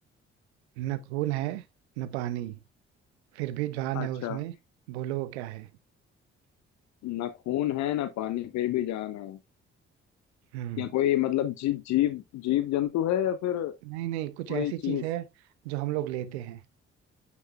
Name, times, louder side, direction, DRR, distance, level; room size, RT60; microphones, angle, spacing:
voice 1, 0.8-1.6 2.0-2.6 3.3-4.5 4.9-5.7 10.5-10.9 13.8-15.3 15.6-16.6, right 15 dB, 75° right, 0.7 m, -32 dB
voice 2, 3.9-4.4 7.0-9.4 10.8-13.7 14.5-15.0, left 13 dB, 55° left, 0.7 m, -28 dB
9.2 x 6.0 x 2.3 m
figure-of-eight pair, 40°, 33 cm